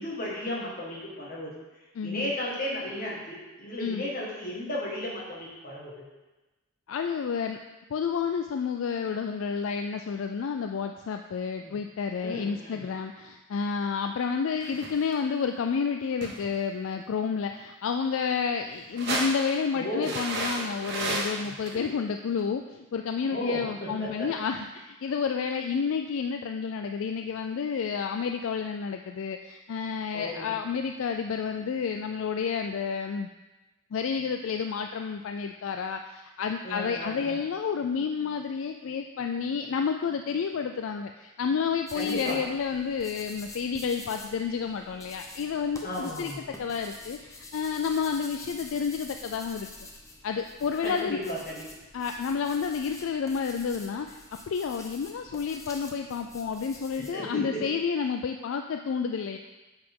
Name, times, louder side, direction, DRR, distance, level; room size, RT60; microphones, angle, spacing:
voice 1, 0.0-1.5 2.0-5.9 11.6-11.8 12.2-12.8 19.7-20.2 21.4-21.9 23.3-24.3 30.1-30.5 36.6-37.4 41.9-42.4 45.8-46.6 50.8-51.7 57.0-57.6, left 1 dB, 40° left, -4 dB, 1.8 m, -35 dB
voice 2, 2.0-2.3 3.8-4.0 6.9-7.6 7.9-33.3 33.9-46.3 46.6-49.7 50.2-51.2 51.9-54.2 54.5-59.4, left 6 dB, 70° left, 5 dB, 0.3 m, -30 dB
sound 1, 14.6-15.2 16.2-16.6 18.8-19.5 20.0-21.7 22.4-22.5, right 2 dB, 55° right, 1.2 m, -32 dB
sound 2, 41.9-57.1, left 2 dB, 15° left, 0.7 m, -47 dB
8.5 x 4.9 x 3.7 m, 1.1 s
head